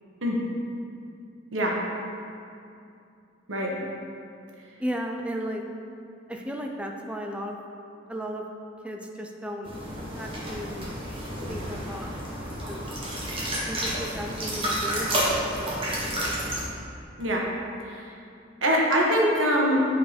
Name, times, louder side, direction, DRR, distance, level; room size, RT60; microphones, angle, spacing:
voice 1, 4.8-5.6 6.3-7.5 8.1-8.4 8.8-9.7 10.2-11.0 11.5-12.1 12.6-12.9 13.6-16.5, equal, 5° right, 2 dB, 0.5 m, -35 dB
sound 1, 9.6-16.6, right 1 dB, 30° right, 1.7 m, -30 dB
voice 2, 18.6-19.9, equal, 85° right, -2 dB, 1.4 m, -23 dB
8.9 x 4.6 x 5.2 m, 2.5 s
head